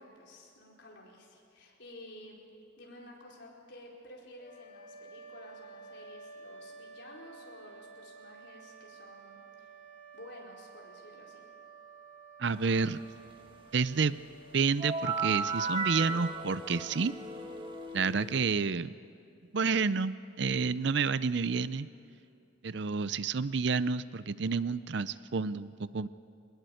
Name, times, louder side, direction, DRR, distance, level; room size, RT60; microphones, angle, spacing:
voice 1, 0.0-2.4 2.8-9.7 10.1-11.4, left 1 dB, 55° left, -2 dB, 4.7 m, -52 dB
sound 1, 4.4-15.3, right 4 dB, 40° left, 7.2 m, -52 dB
voice 2, 12.4-13.0 13.7-14.2 14.5-17.1 17.9-18.9 19.5-21.9 22.6-26.1, right 5 dB, 60° right, 15 dB, 0.5 m, -29 dB
sound 2, 14.8-18.4, right 4 dB, 25° right, 1.6 m, -35 dB
22.5 x 20.0 x 7.9 m, 2.6 s
head